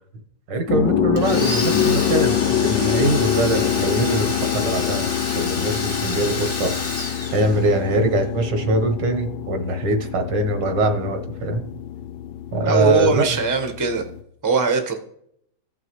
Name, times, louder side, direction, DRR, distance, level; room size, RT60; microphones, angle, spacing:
voice 1, 0.5-6.7 7.3-11.6 12.5-13.2, right 1 dB, 75° right, 6 dB, 1.8 m, -22 dB
Gong Short Burst, 0.7-14.2, left 10 dB, 80° left, 1.3 m, -25 dB
Domestic sounds home sounds, 1.2-8.0, left 3 dB, 35° left, 1.4 m, -29 dB
voice 2, 12.6-14.0 14.4-14.9, right 4 dB, 15° right, 3 dB, 0.8 m, -20 dB
15.5 x 6.1 x 3.1 m, 0.71 s
omnidirectional pair, 1.9 m